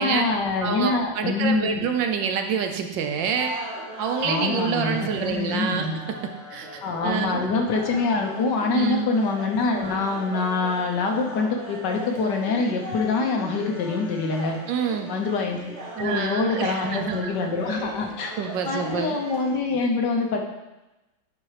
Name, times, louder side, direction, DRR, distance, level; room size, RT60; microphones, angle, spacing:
voice 1, 0.0-1.9 4.2-6.0 6.8-14.6 15.1-18.4 18.6-20.4, left 4 dB, 65° left, 2 dB, 1.5 m, -25 dB
voice 2, 0.6-3.6 4.0-7.5 8.7-9.1 14.7-15.1 16.0-17.3 18.4-19.2, right 6 dB, 75° right, 5 dB, 1.4 m, -27 dB
sound 1, 3.4-19.6, right 1 dB, 40° right, 1.4 m, -38 dB
8.9 x 4.4 x 4.9 m, 1.0 s
omnidirectional pair, 2.0 m